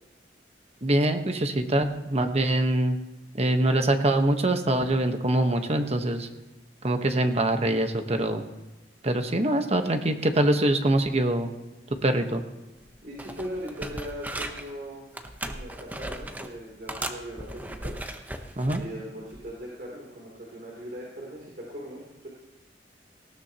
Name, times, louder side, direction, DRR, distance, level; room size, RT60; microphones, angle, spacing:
voice 1, 0.8-3.0 3.4-6.3 6.8-8.4 9.0-11.5 12.0-12.4 18.6-18.8, right 1 dB, 35° right, 6 dB, 1.2 m, -24 dB
sound 1, 12.8-12.9 13.2-14.7 15.1-16.5 16.9-18.8 19.3-19.6, right 1 dB, 10° right, 0.9 m, -37 dB
voice 2, 13.0-15.1 15.4-18.0 18.7-22.3, equal, 55° right, -3 dB, 3.1 m, -39 dB
19.0 x 16.0 x 2.9 m, 1.1 s
head